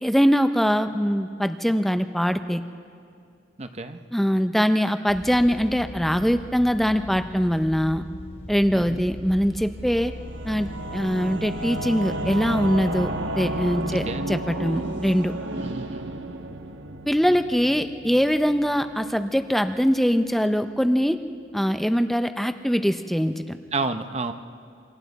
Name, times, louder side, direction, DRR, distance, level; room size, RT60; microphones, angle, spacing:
voice 1, 0.0-2.6 4.1-8.0 8.5-10.1 10.4-15.3 17.1-21.2 21.5-23.6, equal, ahead, 9 dB, 0.5 m, -22 dB
voice 2, 3.6-4.0 8.7-9.1 13.9-14.3 15.6-16.2 23.7-24.3, right 3 dB, 35° right, 8 dB, 0.8 m, -31 dB
sound 1, 5.1-21.9, equal, 40° left, 2.7 m, -42 dB
Singing / Musical instrument, 9.7-18.9, right 1 dB, 70° right, 1.2 m, -32 dB
27.0 x 25.5 x 4.1 m, 2.3 s
head